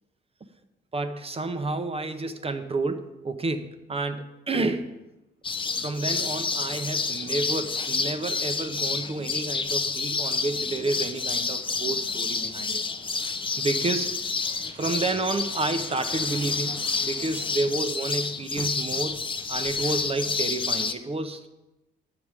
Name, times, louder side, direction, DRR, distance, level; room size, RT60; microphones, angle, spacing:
voice 1, 0.9-5.0 5.8-12.8 13.6-14.2 14.7-19.2 19.5-21.5, right 3 dB, 30° right, 8 dB, 0.7 m, -30 dB
sound 1, 5.4-20.9, left 4 dB, 25° left, 0.6 m, -29 dB
Aircraft, 7.9-17.9, right 2 dB, 80° right, 2.3 m, -52 dB
9.0 x 6.9 x 4.9 m, 0.98 s
cardioid pair, 90°, 20 cm